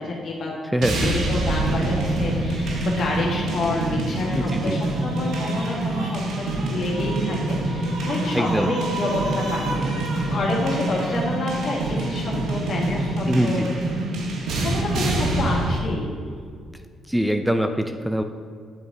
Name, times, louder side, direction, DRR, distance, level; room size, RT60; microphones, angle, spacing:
voice 1, 0.0-0.5 1.0-13.6 14.6-16.1, left 2 dB, 60° left, -3 dB, 2.0 m, -28 dB
voice 2, 0.7-1.2 4.4-4.8 8.3-8.7 10.2-10.3 13.3-13.7 17.1-18.2, equal, 5° right, 7 dB, 0.5 m, -23 dB
sound 1, 0.8-15.8, right 2 dB, 75° right, 1.1 m, -25 dB
9.5 x 4.8 x 3.9 m, 2.1 s
supercardioid pair, 60°, 0 cm